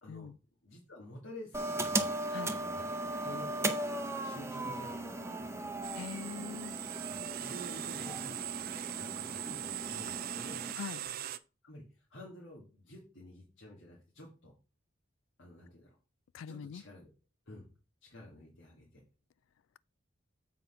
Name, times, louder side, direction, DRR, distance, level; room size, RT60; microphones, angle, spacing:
voice 1, 0.6-2.2 2.5-3.9 4.2-5.7 7.1-8.4 8.9-10.7 11.6-14.5 15.4-16.0 16.5-17.1 17.5-17.7 18.0-19.0, left 1 dB, 70° left, 1.9 m, -50 dB
sound 1, 1.5-10.7, right 2 dB, 15° right, 0.7 m, -37 dB
sound 2, 5.8-11.4, right 13 dB, 50° right, 0.4 m, -41 dB
voice 2, 5.9-6.8 10.8-11.0 16.3-16.8, left 7 dB, 85° left, 0.3 m, -43 dB
7.5 x 3.9 x 5.6 m
head